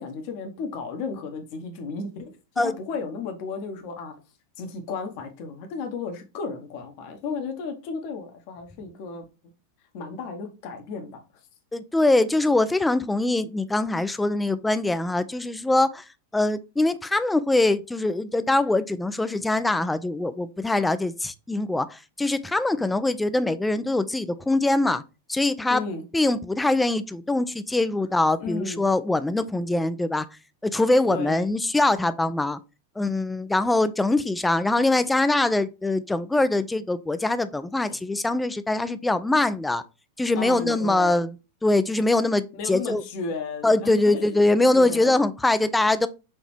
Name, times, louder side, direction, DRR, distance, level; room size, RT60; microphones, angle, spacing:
voice 1, 0.0-4.1 4.6-9.2 9.9-11.2 25.7-26.0 28.4-28.8 31.1-31.5 37.9-38.0 40.3-41.2 42.5-44.4 44.7-45.2, left 4 dB, 45° left, 1.0 m, -34 dB
voice 2, 11.7-16.0 16.3-25.0 25.3-25.8 26.1-30.3 30.6-32.6 33.0-39.8 40.2-41.3 41.6-43.0 43.6-46.1, left 2 dB, 5° left, 0.3 m, -23 dB
5.9 x 2.9 x 3.1 m
figure-of-eight pair, 90°, 0 cm